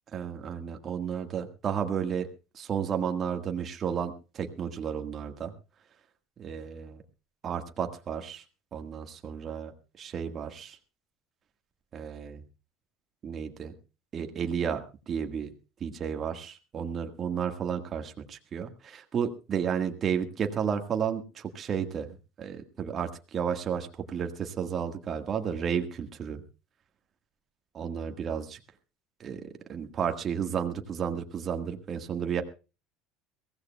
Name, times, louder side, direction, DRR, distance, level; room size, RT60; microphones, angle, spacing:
voice 1, 0.1-2.3 2.5-5.5 6.4-7.0 7.4-8.4 8.7-9.7 10.0-10.8 11.9-12.4 13.2-13.7 14.1-15.5 15.8-26.4 27.7-28.6 29.2-32.4, right 7 dB, 40° right, 6 dB, 1.6 m, -32 dB
23.0 x 16.5 x 2.3 m, 0.32 s
hypercardioid pair, 70°, 0 cm